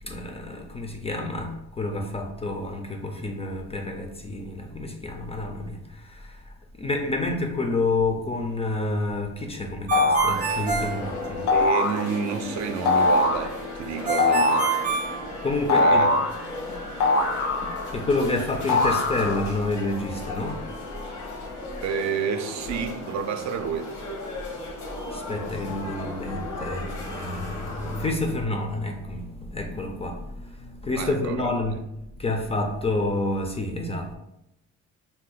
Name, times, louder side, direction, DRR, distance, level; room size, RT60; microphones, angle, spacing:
voice 1, 0.0-11.5 15.4-16.1 17.9-20.6 25.1-31.8 32.2-34.2, left 2 dB, 20° left, 3 dB, 0.3 m, -29 dB
sound 1, 9.9-10.5 11.5-12.0 12.9-13.5 14.2-14.8 15.7-16.4 17.0-18.0 18.7-19.5, left 2 dB, 70° left, 0.6 m, -21 dB
Ringtone, 9.9-11.8 14.1-15.9, right 6 dB, 30° right, 0.7 m, -27 dB
sound 2, 10.3-28.1, left 2 dB, 90° left, 0.9 m, -36 dB
voice 2, 11.5-14.7 15.7-16.2 21.8-23.9 31.0-31.7, right 6 dB, 65° right, 7 dB, 0.5 m, -29 dB
2.6 x 2.1 x 3.9 m, 0.84 s
cardioid pair, 110°, 30 cm